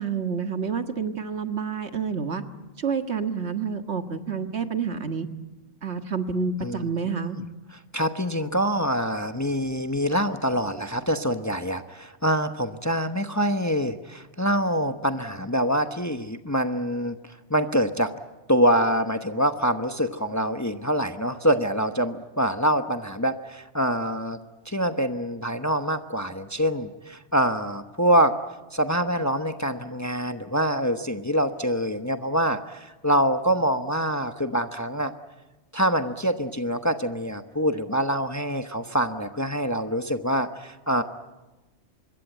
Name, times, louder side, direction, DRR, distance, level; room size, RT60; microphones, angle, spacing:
voice 1, 0.0-2.4 2.8-5.3 5.8-7.4, right 5 dB, 65° right, 7 dB, 1.8 m, -28 dB
voice 2, 7.9-17.2 17.5-18.1 18.5-24.4 24.7-28.3 28.7-35.1 35.7-41.0, equal, 15° left, 7 dB, 1.0 m, -25 dB
25.5 x 22.0 x 9.1 m, 1.1 s
omnidirectional pair, 1.2 m